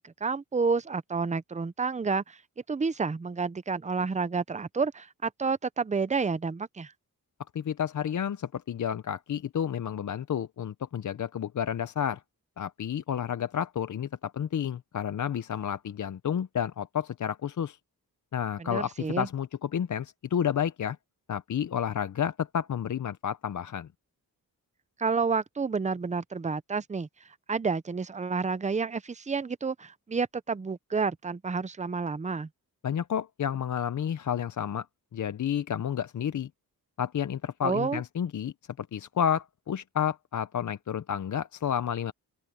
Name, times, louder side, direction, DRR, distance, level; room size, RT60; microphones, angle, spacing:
voice 1, 0.0-2.4 2.7-6.9 18.6-19.3 25.0-27.1 27.5-32.5 37.6-38.0, right 4 dB, 20° right, 0.6 m, -30 dB
voice 2, 7.5-12.2 12.6-17.8 18.3-21.0 21.3-23.9 32.8-34.9 35.1-36.5 37.0-42.1, left 9 dB, 55° left, 0.6 m, -30 dB
open air
wide cardioid pair, 130°, 37 cm